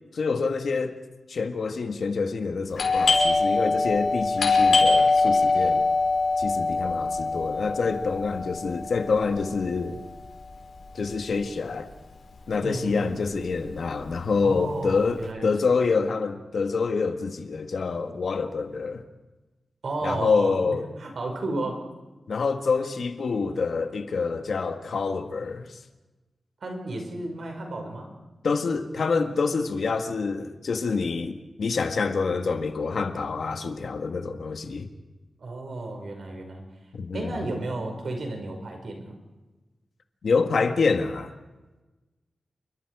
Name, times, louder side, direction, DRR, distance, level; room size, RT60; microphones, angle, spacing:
voice 1, 0.1-1.0 1.3-5.8 6.4-10.0 10.9-11.9 12.5-19.0 20.0-20.8 22.3-25.8 28.4-34.9 36.9-37.4 40.2-41.3, left 4 dB, 65° left, 1.8 m, -27 dB
Doorbell, 2.7-12.1 12.4-12.5 13.1-13.5 13.8-15.2, left 3 dB, 90° left, 5.2 m, -24 dB
voice 2, 12.6-13.2 14.4-15.8 19.8-21.8 26.6-28.1 35.4-36.6 37.1-39.2, right 2 dB, 65° right, 5.5 m, -33 dB
28.5 x 24.5 x 4.9 m
wide cardioid pair, 180°, 0 cm